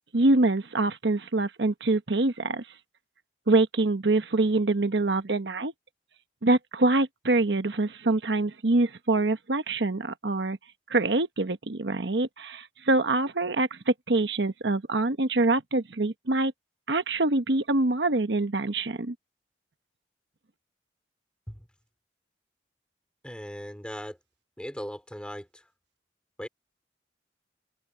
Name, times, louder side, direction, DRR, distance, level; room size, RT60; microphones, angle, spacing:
voice 1, 0.1-2.6 3.5-5.7 6.4-10.6 10.9-16.5 16.9-19.1, right 2 dB, 80° right, 1.1 m, -25 dB
voice 2, 23.2-24.2 24.6-25.7 26.4-26.5, equal, 5° left, 2.5 m, -38 dB
head